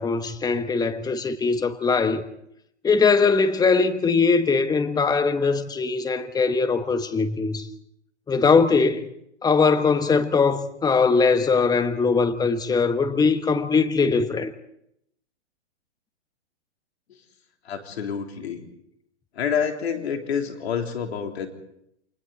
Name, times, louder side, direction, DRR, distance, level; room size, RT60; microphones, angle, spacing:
voice 1, 0.0-2.2 2.8-7.7 8.3-9.1 9.4-14.5, left 4 dB, 10° left, 1.3 m, -21 dB
voice 2, 17.6-18.7 19.3-21.5, left 7 dB, 65° left, 3.5 m, -28 dB
29.0 x 24.5 x 4.1 m
hypercardioid pair, 120°, 34 cm